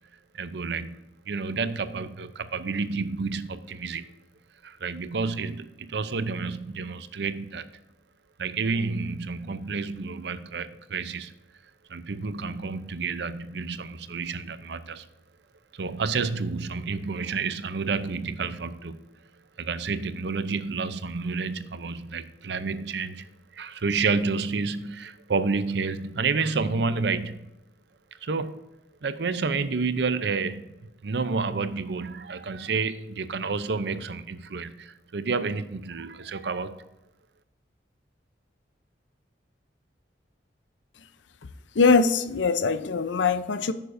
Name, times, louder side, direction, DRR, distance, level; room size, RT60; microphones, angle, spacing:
voice 1, 0.3-1.0 1.3-4.1 4.6-7.7 8.4-11.3 11.9-15.0 15.7-19.1 19.6-27.5 28.2-28.6 29.0-36.8, right 4 dB, 70° right, 13 dB, 0.6 m, -30 dB
voice 2, 41.7-43.7, left 4 dB, 85° left, 12 dB, 0.6 m, -22 dB
11.5 x 9.0 x 2.6 m, 0.97 s
head